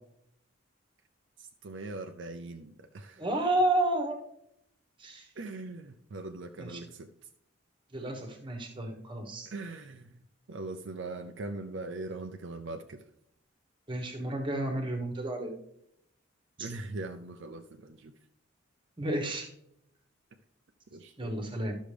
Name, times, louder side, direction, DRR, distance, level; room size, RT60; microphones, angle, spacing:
voice 1, 1.4-3.2 5.4-7.1 9.5-10.2 10.5-13.0 16.6-18.1 20.9-21.4, right 2 dB, 60° right, 5 dB, 0.5 m, -41 dB
voice 2, 3.2-4.2 5.0-5.3 6.6-6.8 7.9-9.5 13.9-15.5 16.6-16.7 19.0-19.5 21.2-21.7, right 1 dB, 25° right, 3 dB, 1.2 m, -31 dB
12.0 x 6.2 x 3.4 m, 0.76 s
head